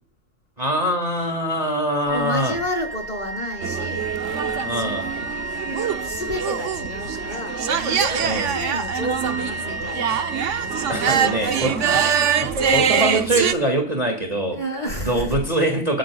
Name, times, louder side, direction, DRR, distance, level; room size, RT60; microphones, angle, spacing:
voice 1, 0.6-2.6 4.6-5.1 8.2-8.6 10.9-14.6 15.0-16.0, right 1 dB, 30° right, 2 dB, 2.3 m, -24 dB
voice 2, 2.0-4.2 5.7-10.3 11.0-11.9 14.5-15.5, equal, 30° left, -1 dB, 5.2 m, -31 dB
Wind instrument woodwind instrument, 2.1-12.2, right 1 dB, 85° left, 4.3 m, -33 dB
sound 1, 3.6-13.5, right 7 dB, 60° right, 1.2 m, -24 dB
27.5 x 13.5 x 2.4 m, 0.37 s
omnidirectional pair, 1.4 m